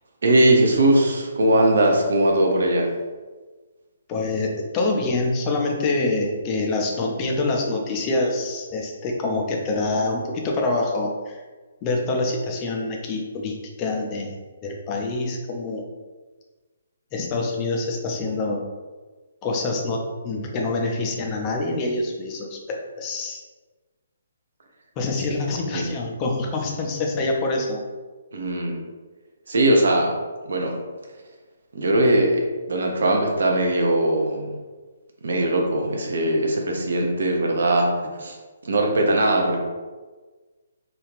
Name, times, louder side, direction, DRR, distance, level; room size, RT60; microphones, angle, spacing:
voice 1, 0.2-2.9 25.7-25.9 28.3-28.8 29.5-30.1 30.4-30.8 31.7-34.5 35.2-37.9 38.2-38.4 38.6-39.6, right 1 dB, 55° right, 1 dB, 0.5 m, -20 dB
voice 2, 4.1-11.4 11.8-14.3 14.6-15.8 17.1-18.6 19.4-23.4 25.0-27.8, left 2 dB, 25° left, 0 dB, 0.4 m, -26 dB
2.4 x 2.4 x 3.1 m, 1.3 s
figure-of-eight pair, 135°, 0 cm